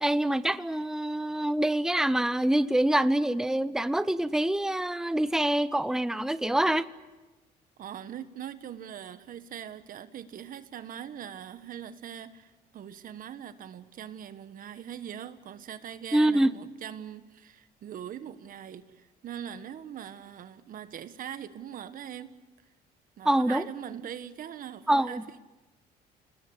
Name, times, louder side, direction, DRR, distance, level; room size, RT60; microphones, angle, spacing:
voice 1, 0.0-6.9 16.1-16.5 23.2-23.6 24.9-25.2, right 1 dB, 5° right, 0.8 m, -25 dB
voice 2, 7.8-22.4 23.2-25.4, right 9 dB, 55° right, 1.4 m, -42 dB
29.5 x 20.0 x 8.2 m
cardioid pair, 110°, 17 cm